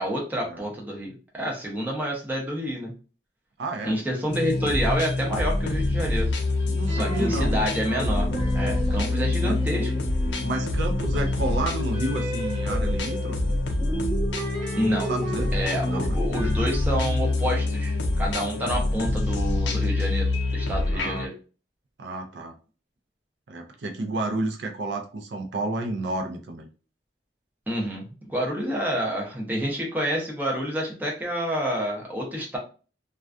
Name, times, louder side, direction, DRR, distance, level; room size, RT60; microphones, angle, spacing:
voice 1, 0.0-2.9 3.8-6.3 6.9-8.3 8.5-9.9 14.8-15.1 15.5-21.3 27.7-32.6, equal, 10° right, -2 dB, 0.6 m, -28 dB
voice 2, 3.6-4.0 6.7-7.6 9.4-9.5 10.4-13.6 15.0-15.5 15.8-16.2 20.9-21.3 22.0-22.5 23.5-26.7, right 2 dB, 70° right, 3 dB, 0.4 m, -31 dB
sound 1, 4.3-21.3, left 2 dB, 75° left, 0.5 m, -26 dB
sound 2, 6.9-10.6 10.9-18.7, right 1 dB, 35° right, 1.0 m, -35 dB
2.3 x 2.2 x 2.4 m, 0.36 s
head